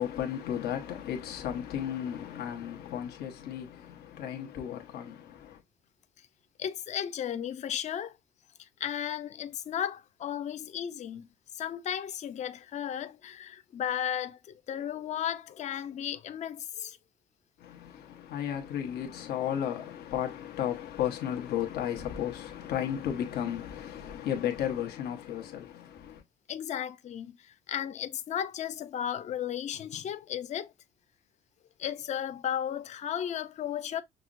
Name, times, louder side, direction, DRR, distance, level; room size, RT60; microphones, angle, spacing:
voice 1, 0.0-5.6 17.6-26.2, left 10 dB, 75° left, 1.1 m, -34 dB
voice 2, 6.6-8.1 8.6-11.3 11.5-17.0 26.5-30.7 31.8-34.0, left 10 dB, 45° left, 0.5 m, -35 dB
6.0 x 2.0 x 2.5 m
cardioid pair, 110°, 17 cm